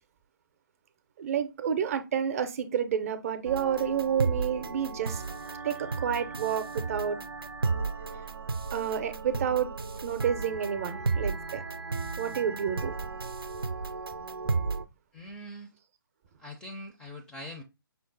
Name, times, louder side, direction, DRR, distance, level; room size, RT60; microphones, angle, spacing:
voice 1, 1.2-5.2 5.6-7.2 8.7-9.7 10.0-11.6 12.2-12.9, right 8 dB, 40° right, 0.6 m, -29 dB
sound 1, 3.5-14.8, right 4 dB, 90° right, 0.6 m, -33 dB
voice 2, 15.1-15.7 16.4-17.6, left 1 dB, 5° left, 0.4 m, -42 dB
5.7 x 2.0 x 3.8 m
hypercardioid pair, 150°, 12 cm